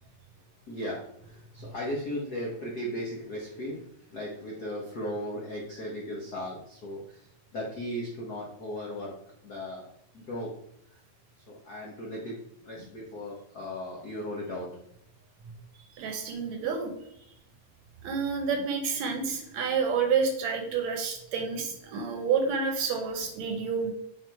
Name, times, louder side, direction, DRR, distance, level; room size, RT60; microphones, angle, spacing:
voice 1, 0.7-3.8 4.1-7.3 7.5-9.1 9.4-9.8 10.1-10.5 11.5-12.4 12.6-14.7, equal, 90° left, -3 dB, 0.8 m, -36 dB
voice 2, 16.0-16.9 18.0-23.9, right 5 dB, 70° right, 4 dB, 1.9 m, -29 dB
6.0 x 4.7 x 4.6 m, 0.79 s
omnidirectional pair, 3.7 m